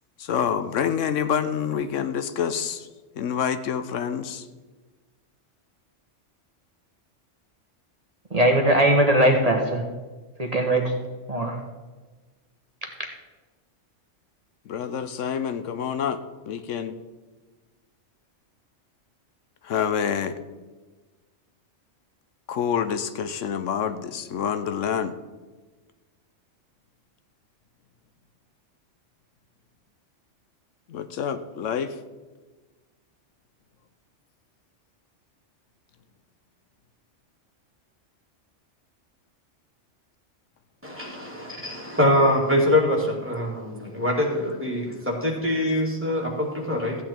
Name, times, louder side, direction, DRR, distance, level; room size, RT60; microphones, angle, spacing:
voice 1, 0.2-2.9 3.2-4.5 14.7-16.2 16.5-17.0 19.6-20.4 22.5-25.1 30.9-32.0, left 8 dB, 85° left, 11 dB, 1.1 m, -27 dB
voice 2, 8.3-9.8 10.4-10.9 11.3-11.6, right 1 dB, 30° right, 1 dB, 1.3 m, -20 dB
voice 3, 40.8-47.0, left 1 dB, 10° right, -3 dB, 2.5 m, -24 dB
14.5 x 8.7 x 4.4 m, 1.3 s
omnidirectional pair, 1.3 m